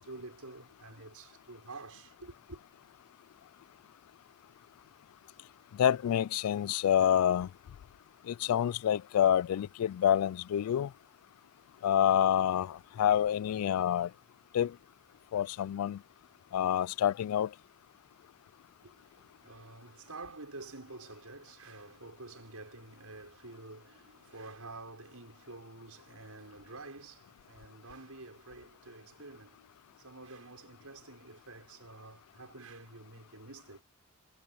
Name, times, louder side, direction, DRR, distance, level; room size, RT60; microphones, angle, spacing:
voice 1, 0.0-2.6 18.8-33.8, right 3 dB, 80° right, 5.8 m, -49 dB
voice 2, 5.7-7.5 8.3-10.9 11.8-14.1 14.5-14.7 15.3-16.0 16.5-17.5, left 10 dB, 75° left, 0.3 m, -27 dB
head